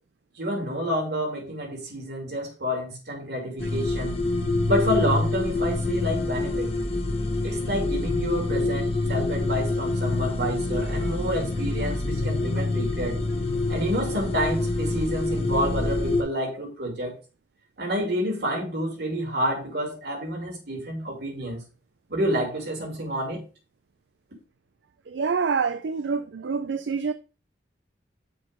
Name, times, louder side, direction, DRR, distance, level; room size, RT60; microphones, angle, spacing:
voice 1, 0.4-4.1 4.7-6.7 7.4-13.2 13.7-17.1 17.8-21.6 22.1-23.4, equal, 65° right, 2.4 m, -29 dB
sound 1, 3.6-16.2, left 2 dB, 35° left, 0.9 m, -26 dB
voice 2, 25.1-27.1, right 5 dB, 80° right, 0.4 m, -26 dB
6.3 x 4.7 x 4.9 m
head